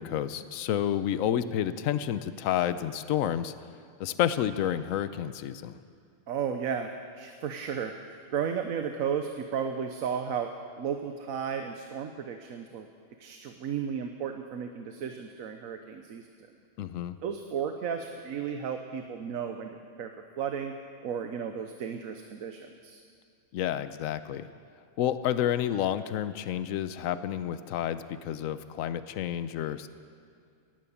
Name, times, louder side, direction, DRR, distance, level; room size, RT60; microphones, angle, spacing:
voice 1, 0.0-3.5 4.0-5.8 16.8-17.2 23.5-24.5 25.0-29.9, left 10 dB, 75° left, 13 dB, 1.0 m, -30 dB
voice 2, 6.3-12.9 13.2-16.3 17.2-20.8 21.0-23.0, right 7 dB, 80° right, 6 dB, 1.2 m, -34 dB
18.5 x 11.0 x 7.1 m, 2.4 s
omnidirectional pair, 1.4 m